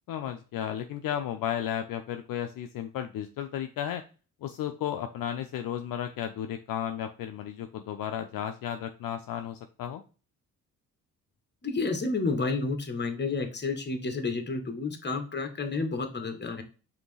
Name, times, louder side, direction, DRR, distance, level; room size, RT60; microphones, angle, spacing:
voice 1, 0.1-4.0 4.4-10.0, left 10 dB, 60° left, 7 dB, 0.5 m, -34 dB
voice 2, 11.6-16.6, left 3 dB, 25° left, 7 dB, 1.0 m, -30 dB
5.1 x 2.8 x 3.1 m, 0.35 s
supercardioid pair, 55°, 39 cm